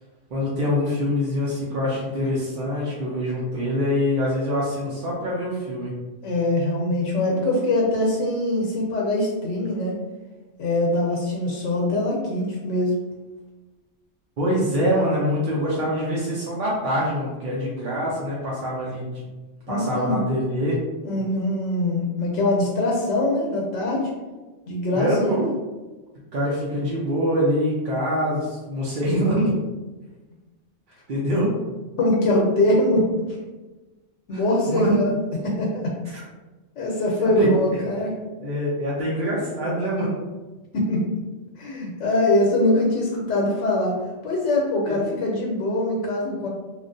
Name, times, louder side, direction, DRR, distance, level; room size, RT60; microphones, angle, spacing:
voice 1, 0.3-5.9 14.4-19.2 19.7-20.8 24.9-25.5 26.3-29.5 31.1-31.5 34.3-35.0 36.0-36.2 37.2-37.5 38.4-40.2 44.9-45.0, equal, 55° right, -6 dB, 0.7 m, -24 dB
voice 2, 6.2-9.9 10.6-13.0 19.7-20.2 21.0-24.1 24.7-25.5 32.0-33.4 34.3-35.9 36.8-38.1 40.7-41.1 41.6-46.5, left 1 dB, 80° left, -2 dB, 0.9 m, -23 dB
3.1 x 2.4 x 2.5 m, 1.2 s
omnidirectional pair, 1.2 m